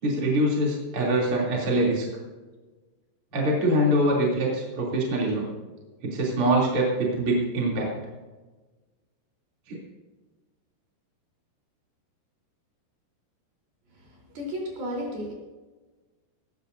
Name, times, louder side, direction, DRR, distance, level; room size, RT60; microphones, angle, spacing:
voice 1, 0.0-2.0 3.3-5.5 6.0-7.9 9.7-9.8, right 1 dB, 35° right, -4 dB, 3.0 m, -24 dB
voice 2, 14.4-15.3, equal, 50° right, -2 dB, 5.2 m, -32 dB
19.5 x 15.5 x 2.7 m, 1.3 s
omnidirectional pair, 5.9 m